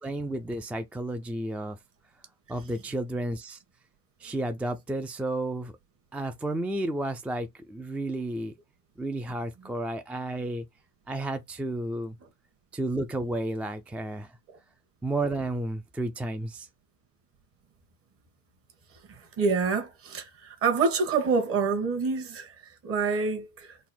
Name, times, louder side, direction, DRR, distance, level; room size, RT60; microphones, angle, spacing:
voice 1, 0.0-1.8 2.5-3.6 4.2-5.7 6.1-8.5 9.0-10.7 11.1-12.2 12.7-14.4 15.0-16.7, right 1 dB, 5° right, 0.3 m, -32 dB
voice 2, 19.1-23.8, right 4 dB, 45° right, 1.4 m, -27 dB
4.0 x 2.1 x 4.2 m
supercardioid pair, 100°, 32 cm